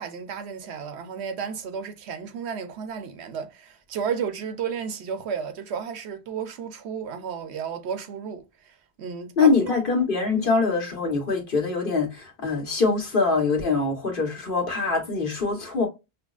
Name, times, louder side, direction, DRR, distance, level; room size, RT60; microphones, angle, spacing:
voice 1, 0.0-9.7 10.4-10.5, right 7 dB, 80° right, 0.9 m, -33 dB
voice 2, 9.4-15.9, left 4 dB, 55° left, 1.3 m, -23 dB
5.8 x 2.0 x 2.3 m
omnidirectional pair, 1.1 m